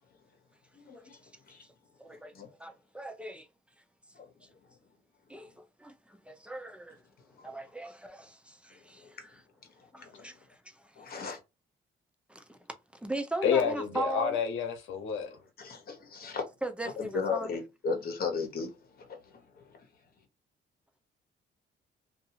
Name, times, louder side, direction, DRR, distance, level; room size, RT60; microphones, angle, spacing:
voice 1, 0.7-1.7 2.1-2.5 4.1-4.3 7.3-7.6 8.7-9.3 9.6-10.4 10.9-11.4 15.3-16.4 16.8-19.9, left 5 dB, 50° left, 1.2 m, -37 dB
voice 2, 2.0-2.3 2.6-3.5 5.3-7.0 7.4-9.2 9.9-10.9 12.3-12.6 13.0-14.4 16.6-17.5, right 2 dB, 5° right, 0.6 m, -38 dB
voice 3, 13.4-15.3, left 7 dB, 80° left, 0.9 m, -29 dB
2.6 x 2.6 x 2.8 m
cardioid pair, 90°, 20 cm